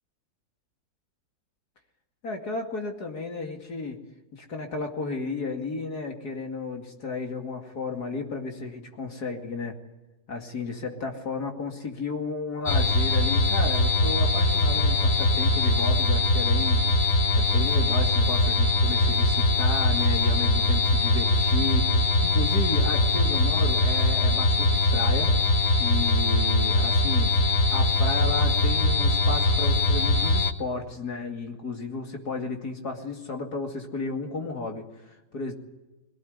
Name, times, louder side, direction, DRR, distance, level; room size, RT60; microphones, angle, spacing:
voice 1, 2.2-4.0 4.3-9.7 10.3-16.8 17.4-25.3 25.8-35.5, left 3 dB, 50° left, 3 dB, 2.8 m, -33 dB
sound 1, 12.7-30.5, left 2 dB, 35° left, 0.8 m, -22 dB
23.0 x 17.5 x 9.5 m, 1.1 s
omnidirectional pair, 2.1 m